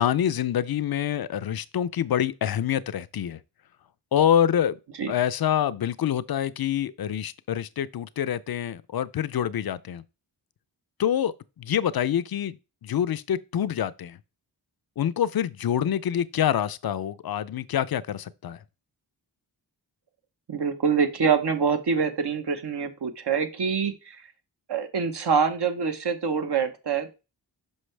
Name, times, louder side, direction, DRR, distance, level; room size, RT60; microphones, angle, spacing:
voice 1, 0.0-3.4 4.1-4.8 5.1-10.0 11.0-12.6 12.8-14.2 15.0-18.6, left 10 dB, 60° left, 0.5 m, -26 dB
voice 2, 20.5-24.2 24.7-27.1, right 6 dB, 65° right, 1.0 m, -25 dB
6.3 x 5.4 x 3.3 m
wide cardioid pair, 85°, 42 cm